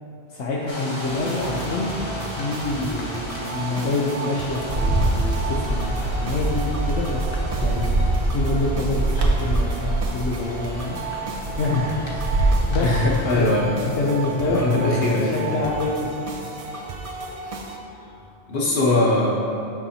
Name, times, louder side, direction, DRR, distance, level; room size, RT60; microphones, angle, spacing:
voice 1, 0.3-1.9 2.4-7.4 7.6-7.9 8.3-12.3 12.7-13.0 13.3-13.5 13.8-16.1, left 2 dB, 85° left, -4 dB, 1.1 m, -27 dB
sound 1, 0.7-13.5, equal, 25° left, 1.1 m, -37 dB
sound 2, 1.1-17.8, right 3 dB, 45° right, 0.5 m, -34 dB
Bird, 4.7-12.7, right 2 dB, 75° right, 1.1 m, -24 dB
voice 2, 12.8-14.0 14.4-15.3 18.5-19.3, left 2 dB, 50° left, -4 dB, 1.4 m, -21 dB
11.0 x 5.4 x 2.8 m, 2.7 s
omnidirectional pair, 1.1 m